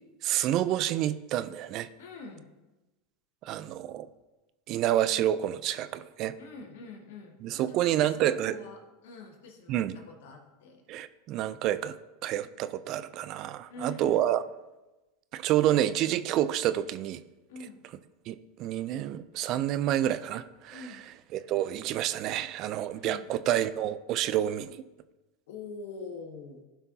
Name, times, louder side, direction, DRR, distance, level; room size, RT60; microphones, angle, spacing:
voice 1, 0.2-1.9 3.4-4.1 4.7-6.3 7.4-8.6 9.7-10.0 10.9-12.0 12.2-14.4 15.3-17.2 18.3-20.8 21.3-24.8, right 12 dB, 50° right, 14 dB, 0.4 m, -28 dB
voice 2, 2.0-2.5 6.4-10.8 13.7-14.3 17.5-17.8 20.7-21.0 22.9-23.3 25.5-26.6, left 3 dB, 70° left, 0 dB, 1.9 m, -45 dB
15.5 x 5.7 x 2.8 m, 1.1 s
hypercardioid pair, 100°, 0 cm